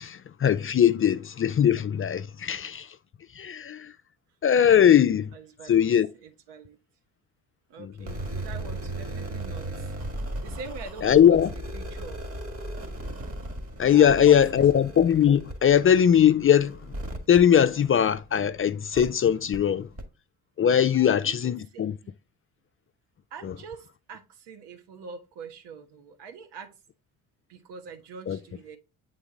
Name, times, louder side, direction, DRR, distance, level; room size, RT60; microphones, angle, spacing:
voice 1, 0.0-3.0 3.3-3.9 4.4-5.3 5.7-6.1 7.8-8.1 11.0-11.5 13.8-17.0 17.3-19.9 20.6-21.9 23.4-23.5 28.3-28.4, left 9 dB, 30° left, 0.5 m, -20 dB
voice 2, 5.3-5.9 6.2-6.8 7.7-9.9 10.4-11.4 11.7-12.3 13.8-14.6 20.9-22.1 23.3-26.7 27.5-28.8, right 5 dB, 70° right, 1.4 m, -44 dB
sound 1, 8.0-18.4 18.9-19.1 19.5-19.6 20.0-20.1, right 1 dB, 30° right, 1.9 m, -37 dB
7.9 x 3.9 x 3.8 m
hypercardioid pair, 50°, 43 cm